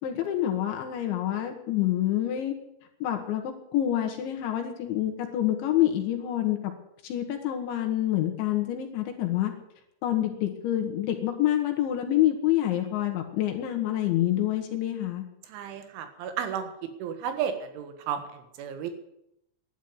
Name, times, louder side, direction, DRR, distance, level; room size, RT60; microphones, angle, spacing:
voice 1, 0.0-2.6 3.0-6.7 7.0-9.5 10.0-15.3, left 12 dB, 75° left, 3 dB, 3.6 m, -27 dB
voice 2, 15.5-16.7 17.0-18.9, right 8 dB, 80° right, 8 dB, 3.9 m, -33 dB
11.5 x 10.5 x 9.5 m, 0.80 s
omnidirectional pair, 5.4 m